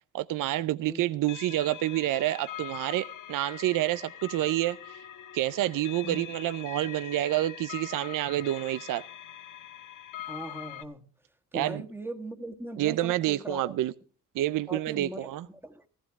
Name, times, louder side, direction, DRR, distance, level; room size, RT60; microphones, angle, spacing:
voice 1, 0.1-5.0 5.3-9.0 11.5-11.8 12.8-13.9 14.4-15.5, right 15 dB, 90° right, 0.5 m, -28 dB
sound 1, 1.2-10.8, left 10 dB, 75° left, 1.4 m, -43 dB
voice 2, 10.3-11.1 11.5-13.7 14.7-15.9, right 1 dB, 5° right, 1.6 m, -40 dB
15.5 x 15.0 x 3.5 m
cardioid pair, 95°, 31 cm